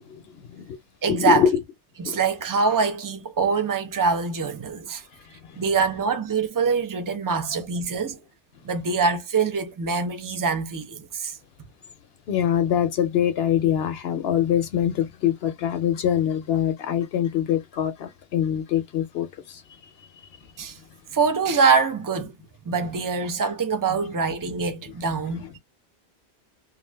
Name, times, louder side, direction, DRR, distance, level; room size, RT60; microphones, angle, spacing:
voice 1, 0.1-0.8 1.1-1.6 2.0-2.2 5.3-5.6 12.3-19.6, left 10 dB, 70° left, 0.8 m, -24 dB
voice 2, 1.0-1.4 2.0-5.0 5.6-8.2 8.6-11.4 20.6-20.8 21.1-22.3 22.7-25.6, right 5 dB, 30° right, 0.4 m, -24 dB
2.5 x 2.4 x 3.2 m
omnidirectional pair, 1.1 m